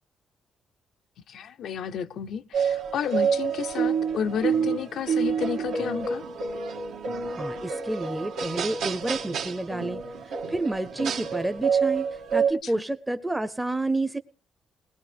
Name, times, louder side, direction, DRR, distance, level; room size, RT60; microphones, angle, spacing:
voice 1, 1.3-6.2 12.6-12.7, left 8 dB, 75° left, 0.7 m, -31 dB
sound 1, 2.5-12.5, right 6 dB, 85° right, 1.6 m, -28 dB
voice 2, 7.3-14.2, right 2 dB, 10° right, 0.7 m, -30 dB
20.5 x 19.5 x 3.4 m
cardioid pair, 90°, 0 cm